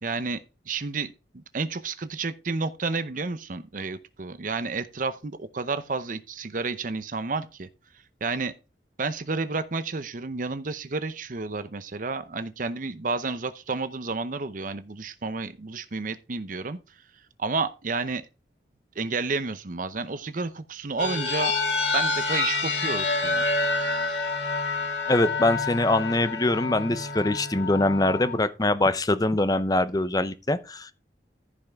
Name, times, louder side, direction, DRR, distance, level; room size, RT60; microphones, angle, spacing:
voice 1, 0.0-0.4 0.7-7.7 8.2-8.5 9.0-16.8 17.4-18.2 19.0-21.5 21.9-23.4, right 4 dB, 45° right, 0.7 m, -31 dB
sound 1, 21.0-28.4, left 3 dB, 80° left, 2.3 m, -28 dB
voice 2, 25.1-30.9, left 2 dB, 20° left, 0.7 m, -23 dB
14.5 x 5.6 x 3.5 m
head